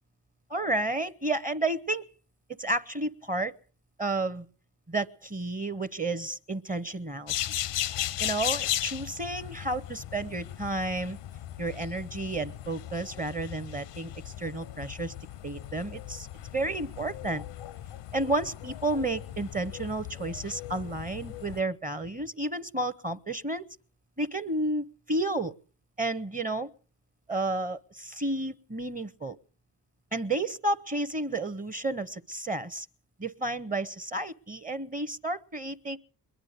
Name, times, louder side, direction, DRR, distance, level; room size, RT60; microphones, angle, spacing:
voice 1, 0.5-2.0 2.6-3.5 4.0-4.4 4.9-7.3 8.2-11.2 11.6-15.1 15.4-16.3 16.5-17.4 18.1-23.6 24.2-25.5 26.0-26.7 27.3-29.4 30.1-32.9 33.2-36.0, right 2 dB, 20° right, 15 dB, 0.7 m, -31 dB
sound 1, 7.3-21.6, left 12 dB, 85° left, 0.7 m, -37 dB
21.5 x 10.0 x 6.5 m, 0.42 s
cardioid pair, 65°, 42 cm